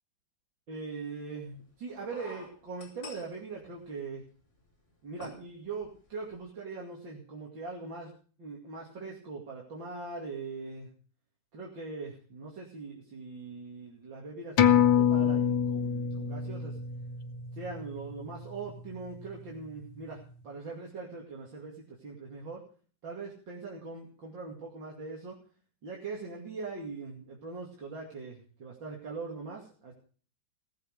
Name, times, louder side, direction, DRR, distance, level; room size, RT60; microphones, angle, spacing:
voice 1, 0.7-4.2 5.0-8.1 8.4-10.9 11.5-16.8 17.5-22.6 23.0-25.4 25.8-29.9, right 4 dB, 75° right, -3 dB, 3.2 m, -41 dB
sound 1, 1.5-1.6 2.1-4.2 4.6-4.7 5.2-5.4 5.8-6.0 6.2-6.4, left 1 dB, 35° left, 5.0 m, -47 dB
sound 2, 14.6-19.5 19.9-20.0, left 8 dB, 85° left, 1.7 m, -27 dB
18.0 x 7.6 x 6.6 m, 0.43 s
omnidirectional pair, 2.0 m